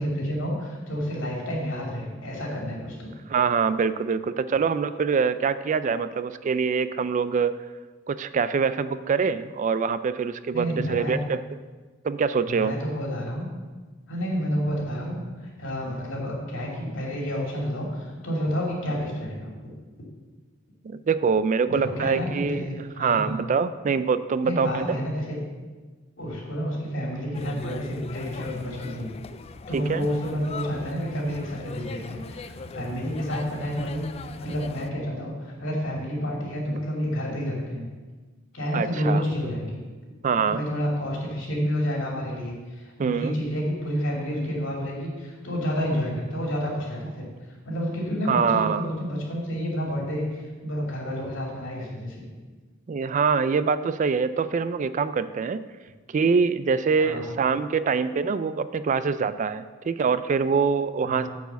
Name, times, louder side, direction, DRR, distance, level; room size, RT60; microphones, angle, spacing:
voice 1, 0.0-3.2 10.5-11.2 12.5-13.5 14.1-19.7 21.7-23.2 24.4-25.4 26.2-29.1 29.7-32.5 32.7-34.1 34.4-37.9 38.5-39.8 40.3-47.3 47.6-52.3 57.0-57.4 61.1-61.3, equal, 75° left, -2 dB, 2.7 m, -29 dB
voice 2, 3.3-7.6 8.1-11.4 12.0-12.7 20.8-22.7 23.0-25.0 29.7-30.1 38.7-39.2 40.2-40.6 43.0-43.4 48.3-48.9 52.9-55.6 56.1-61.3, right 5 dB, 40° right, 14 dB, 0.3 m, -24 dB
sound 1, 27.3-34.9, left 4 dB, 30° left, 0.3 m, -41 dB
9.1 x 4.8 x 6.9 m, 1.3 s
head